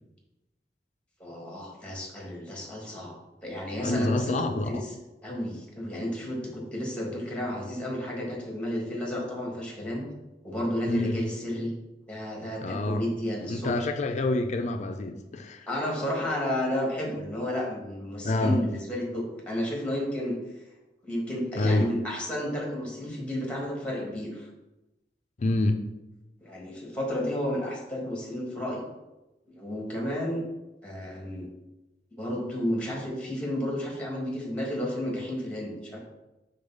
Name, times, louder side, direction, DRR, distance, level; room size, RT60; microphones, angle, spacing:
voice 1, 1.2-3.1 3.4-4.9 5.2-10.1 10.4-11.7 12.1-13.9 15.7-20.4 21.0-24.5 26.4-28.8 29.5-30.4 30.8-31.5 32.1-36.0, left 1 dB, 5° left, -1 dB, 1.5 m, -32 dB
voice 2, 3.8-4.7 10.9-11.2 12.6-13.0 13.5-15.6 18.2-18.6 21.6-21.9 25.4-25.8, left 2 dB, 40° left, 6 dB, 0.5 m, -27 dB
5.3 x 4.0 x 5.4 m, 1.0 s
head